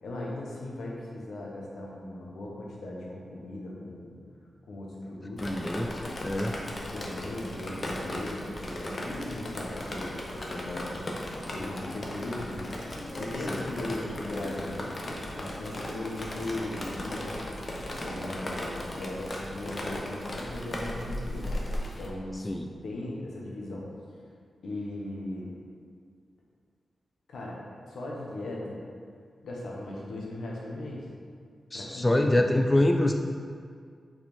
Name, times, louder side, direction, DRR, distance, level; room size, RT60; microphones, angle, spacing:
voice 1, 0.0-4.2 4.7-5.5 6.8-11.0 11.5-12.6 13.2-15.0 15.4-17.4 18.0-21.5 22.0-22.5 22.8-23.9 24.6-25.5 27.3-28.8 29.4-31.1 31.7-32.4, left 1 dB, 80° left, -3 dB, 1.3 m, -38 dB
Drip, 5.4-22.1, left 1 dB, 35° left, 0.8 m, -36 dB
voice 2, 5.4-6.5 13.5-13.6 22.4-22.7 31.7-33.1, left 1 dB, 15° left, 4 dB, 0.3 m, -25 dB
6.0 x 4.4 x 4.3 m, 2.1 s
wide cardioid pair, 135°, 0 cm